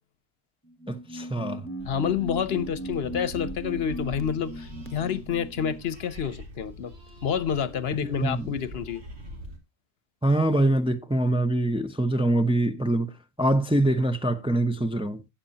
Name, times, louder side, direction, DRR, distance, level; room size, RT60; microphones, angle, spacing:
sound 1, 0.7-5.9, right 1 dB, 15° left, 1.0 m, -38 dB
voice 1, 0.9-1.6 8.0-8.5 10.2-13.1 13.4-15.2, right 1 dB, 5° right, 0.6 m, -24 dB
sound 2, 1.8-9.6, equal, 75° right, 2.7 m, -43 dB
voice 2, 1.9-6.9 7.2-9.0, left 8 dB, 65° left, 1.0 m, -28 dB
13.0 x 8.7 x 2.8 m
omnidirectional pair, 1.1 m